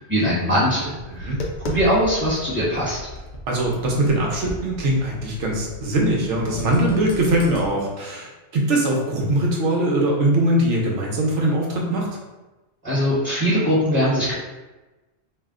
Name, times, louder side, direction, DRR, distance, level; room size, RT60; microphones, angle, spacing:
voice 1, 0.1-1.3 1.6-3.0 12.8-14.3, equal, 30° right, -9 dB, 1.1 m, -21 dB
Tap, 1.0-7.7, left 1 dB, 60° left, 0.5 m, -36 dB
voice 2, 3.5-12.1, right 1 dB, 85° right, -1 dB, 1.0 m, -21 dB
2.6 x 2.1 x 3.6 m, 1.1 s
omnidirectional pair, 1.2 m